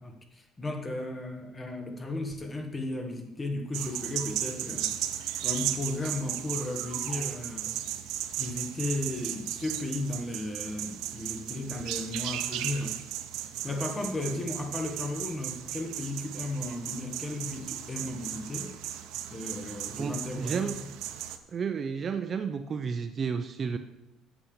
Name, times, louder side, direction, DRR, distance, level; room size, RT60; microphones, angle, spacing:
voice 1, 0.0-4.9 5.4-7.8 8.4-13.0 13.6-18.7 19.3-20.7, left 2 dB, 15° left, 5 dB, 1.4 m, -35 dB
sound 1, 3.7-21.4, right 12 dB, 75° right, 0.8 m, -36 dB
voice 2, 19.9-20.8 21.5-23.8, right 6 dB, 30° right, 9 dB, 0.6 m, -32 dB
8.9 x 7.1 x 7.0 m, 0.92 s
cardioid pair, 150°, 0 cm